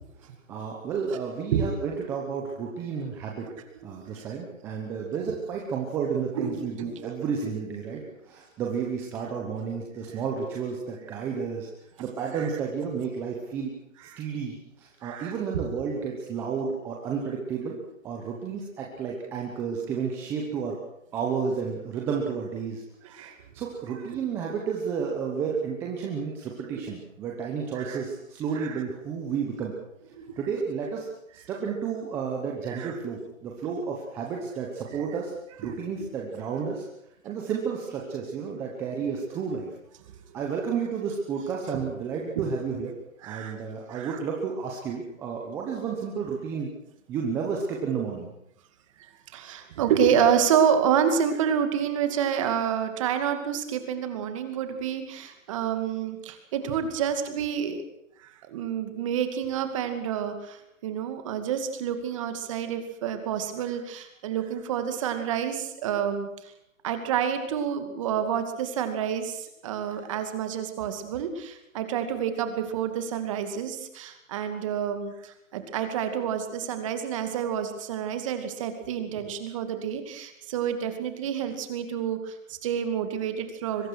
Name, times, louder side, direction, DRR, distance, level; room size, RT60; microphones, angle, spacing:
voice 1, 0.5-3.5 3.8-11.7 12.0-13.7 14.2-17.8 18.0-20.8 21.1-29.7 30.4-31.1 31.3-36.8 37.2-39.7 40.3-42.9 43.2-46.7 47.1-48.3, right 6 dB, 5° right, -1 dB, 1.0 m, -31 dB
voice 2, 6.3-6.9 12.4-12.5 14.1-14.2 15.0-15.3 23.0-23.3 26.8-26.9 27.8-28.0 28.5-28.8 30.2-30.3 32.7-32.9 34.9-35.0 35.6-36.1 42.4-42.5 43.2-43.6 43.9-44.2 49.3-57.8 58.2-66.5 66.8-83.9, right 8 dB, 25° right, 8 dB, 2.4 m, -28 dB
23.0 x 21.5 x 6.3 m, 0.78 s
hypercardioid pair, 170°, 40 cm